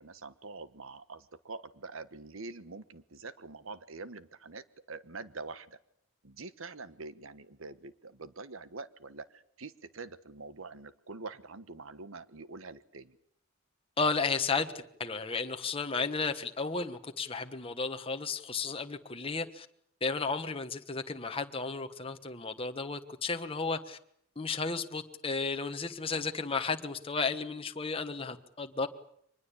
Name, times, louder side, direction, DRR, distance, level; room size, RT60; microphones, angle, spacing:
voice 1, 0.0-5.8 6.2-13.2, right 3 dB, 65° right, 15 dB, 1.3 m, -45 dB
voice 2, 14.0-19.7 20.0-24.0 24.4-28.9, left 4 dB, 25° left, 6 dB, 1.2 m, -33 dB
24.5 x 20.5 x 8.5 m, 0.69 s
head